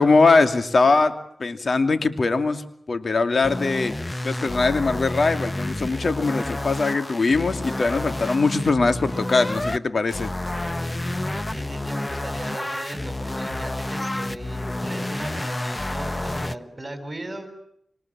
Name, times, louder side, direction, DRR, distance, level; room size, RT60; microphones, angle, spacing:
voice 1, 0.0-4.0 4.2-10.3, left 3 dB, 60° left, 9 dB, 2.6 m, -21 dB
sound 1, 3.4-9.8 10.1-16.6, left 1 dB, 25° left, 1.1 m, -30 dB
voice 2, 11.0-17.5, right 1 dB, 25° right, 7 dB, 7.8 m, -37 dB
26.0 x 26.0 x 7.5 m, 0.72 s
cardioid pair, 45°, 0 cm